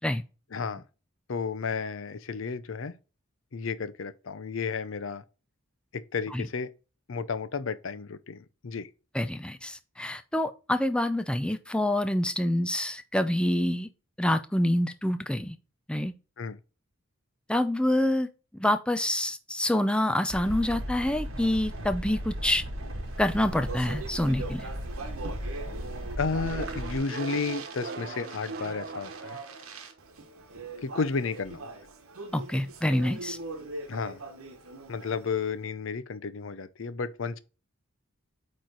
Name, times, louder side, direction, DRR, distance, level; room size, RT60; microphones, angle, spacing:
voice 1, 0.5-0.8 1.3-2.9 3.5-5.2 5.9-6.7 7.1-8.9 16.4-16.6 26.2-29.4 30.8-31.7 33.9-34.2 34.9-37.4, left 5 dB, 65° left, 0.6 m, -32 dB
voice 2, 9.1-13.9 14.2-15.6 15.9-16.1 17.5-18.3 18.5-22.6 23.2-24.7 32.3-33.4, left 1 dB, 5° left, 0.4 m, -27 dB
sound 1, 20.3-27.0, equal, 65° right, 1.4 m, -36 dB
Speech, 23.1-35.5, right 3 dB, 85° right, 1.2 m, -42 dB
sound 2, 26.4-29.9, right 3 dB, 50° right, 0.5 m, -40 dB
8.7 x 3.2 x 3.9 m
head